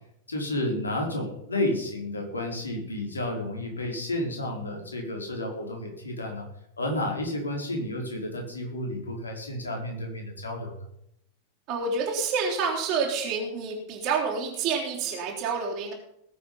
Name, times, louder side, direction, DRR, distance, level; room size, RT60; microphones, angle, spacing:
voice 1, 0.3-6.5 6.8-10.7, left 1 dB, 75° left, 1 dB, 4.4 m, -31 dB
voice 2, 11.7-15.9, right 5 dB, 40° right, -3 dB, 4.0 m, -28 dB
20.0 x 8.4 x 5.6 m, 0.75 s
figure-of-eight pair, 90°, 0 cm